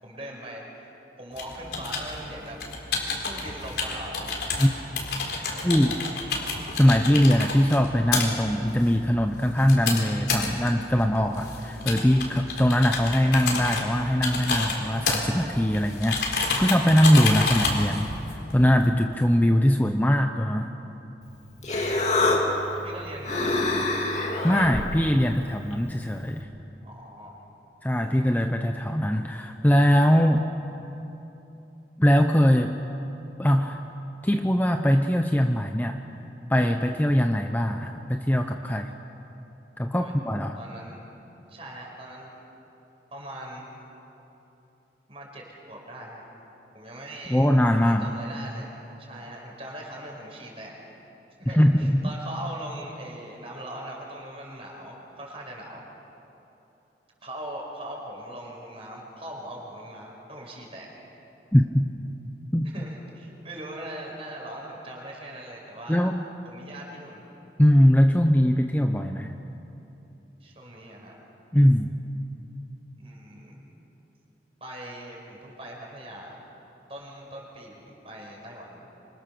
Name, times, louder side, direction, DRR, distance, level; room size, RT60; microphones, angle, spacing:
voice 1, 0.0-2.6 3.2-4.3 5.5-5.9 6.3-6.5 6.8-7.3 21.6-22.1 22.8-23.8 25.4-25.6 26.8-27.4 39.9-40.1 40.6-41.0 41.5-42.3 43.1-43.7 45.1-46.2 46.7-48.7 49.0-50.8 51.4-55.9 57.2-60.9 62.6-66.1 66.4-67.3 70.4-71.2 73.0-73.6 74.6-76.4 76.9-78.9, right 1 dB, 35° right, -1 dB, 5.5 m, -41 dB
sound 1, 1.3-18.9, left 3 dB, 70° left, 4.0 m, -30 dB
voice 2, 5.6-6.0 6.8-20.7 24.2-26.5 27.8-30.5 32.0-32.8 33.4-33.8 34.2-36.0 36.5-38.9 39.8-40.6 47.3-48.1 51.5-52.1 61.5-61.9 62.5-62.7 65.9-66.2 67.6-69.3 71.5-72.0, equal, 10° left, 5 dB, 0.7 m, -21 dB
Human voice, 21.2-26.4, left 2 dB, 40° left, 2.5 m, -28 dB
26.0 x 25.5 x 6.9 m, 3.0 s
head